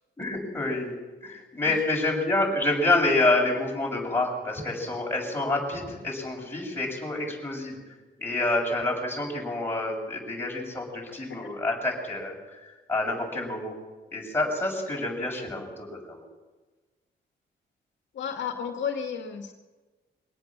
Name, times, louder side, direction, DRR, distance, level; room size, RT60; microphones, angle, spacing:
voice 1, 0.2-1.0 1.2-7.8 8.2-13.7 14.1-16.2, left 2 dB, 10° left, -2 dB, 7.3 m, -28 dB
voice 2, 18.1-19.5, left 7 dB, 70° left, 3 dB, 2.2 m, -32 dB
24.5 x 18.0 x 7.5 m, 1.3 s
wide cardioid pair, 150°, 19 cm